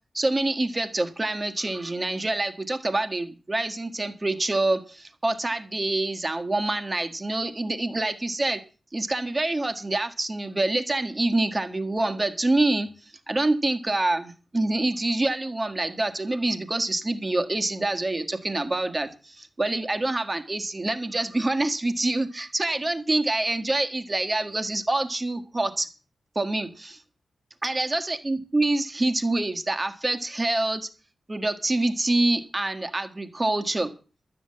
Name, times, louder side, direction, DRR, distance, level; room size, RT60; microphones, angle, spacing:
voice 1, 0.1-8.6 8.9-12.9 13.3-25.9 26.3-27.0 27.6-30.9 31.3-33.9, right 2 dB, 25° right, 6 dB, 1.7 m, -26 dB
12.5 x 7.7 x 8.6 m, 0.36 s
wide cardioid pair, 115°, 0 cm